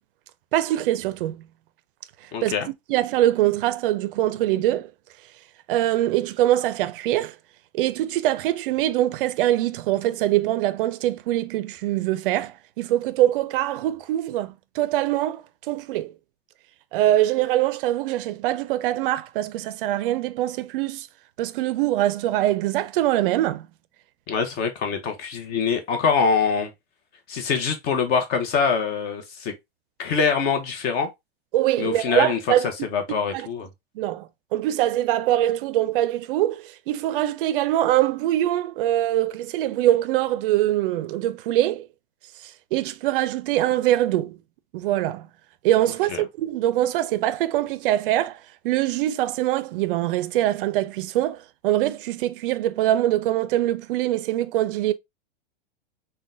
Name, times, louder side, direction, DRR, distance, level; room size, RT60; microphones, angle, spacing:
voice 1, 0.5-1.4 2.4-2.5 2.9-4.9 5.7-7.4 7.7-16.1 16.9-21.1 21.4-23.7 31.5-32.7 33.3-33.5 34.0-41.9 42.4-44.4 44.7-45.3 45.6-48.4 48.6-54.9, right 14 dB, 60° right, 0.4 m, -23 dB
voice 2, 2.3-2.7 24.3-26.7 27.3-29.5 30.0-31.1 31.8-33.7, left 5 dB, 30° left, 0.7 m, -24 dB
3.7 x 2.2 x 2.5 m
hypercardioid pair, 135°, 31 cm